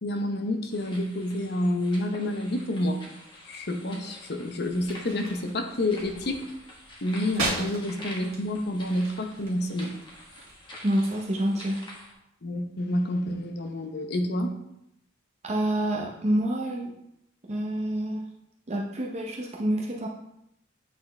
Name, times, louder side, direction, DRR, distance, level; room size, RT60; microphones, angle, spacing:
voice 1, 0.0-3.0 3.4-6.5 7.0-10.0 12.4-14.6, left 1 dB, 55° left, 5 dB, 0.8 m, -29 dB
sound 1, 0.7-12.1, left 1 dB, 25° left, 1.4 m, -47 dB
sound 2, 4.7-10.6, right 2 dB, 85° right, 1.9 m, -38 dB
voice 2, 10.8-11.8 15.4-16.9 17.5-18.2 18.7-20.1, right 1 dB, 35° right, -2 dB, 0.6 m, -27 dB
8.4 x 4.0 x 3.3 m, 0.82 s
head